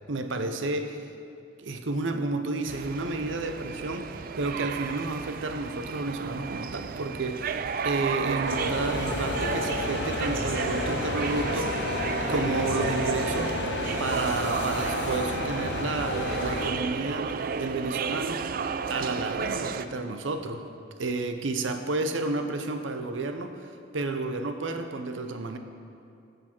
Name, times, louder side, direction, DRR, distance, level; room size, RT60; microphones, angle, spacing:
voice 1, 0.1-1.1 1.6-12.0 12.3-13.7 14.0-18.5 18.9-20.6 21.0-25.6, right 3 dB, 85° right, 7 dB, 0.7 m, -31 dB
sound 1, 2.7-19.9, right 6 dB, 50° right, 0.3 m, -32 dB
sound 2, 8.4-16.7, left 2 dB, 65° left, 0.8 m, -31 dB
13.5 x 6.8 x 4.5 m, 2.5 s
head